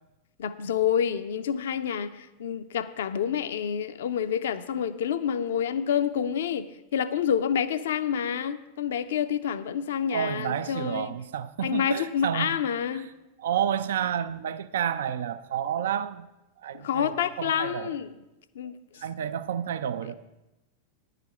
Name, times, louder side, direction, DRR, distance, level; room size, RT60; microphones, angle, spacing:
voice 1, 0.4-6.7 6.9-11.1 11.6-13.1 16.7-18.1 18.6-18.8, left 8 dB, 60° left, 0.5 m, -28 dB
voice 2, 10.1-12.6 12.9-13.1 13.4-16.3 16.6-17.9 19.0-20.2, right 9 dB, 60° right, 0.4 m, -30 dB
10.5 x 5.0 x 8.2 m
figure-of-eight pair, 90°, 0 cm